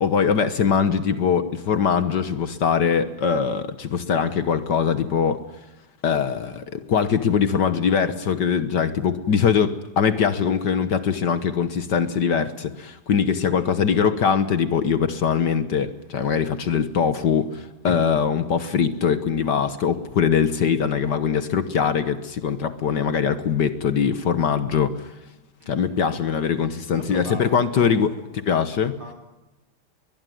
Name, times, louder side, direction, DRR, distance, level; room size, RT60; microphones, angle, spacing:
voice 1, 0.0-5.4 6.0-25.1 25.7-28.1 28.5-29.0, left 7 dB, 55° left, 12 dB, 1.7 m, -22 dB
voice 2, 13.5-13.9 25.6-25.9 26.9-28.3 28.9-29.1, right 1 dB, 70° right, 4 dB, 6.9 m, -41 dB
22.0 x 21.5 x 9.4 m, 0.97 s
omnidirectional pair, 2.4 m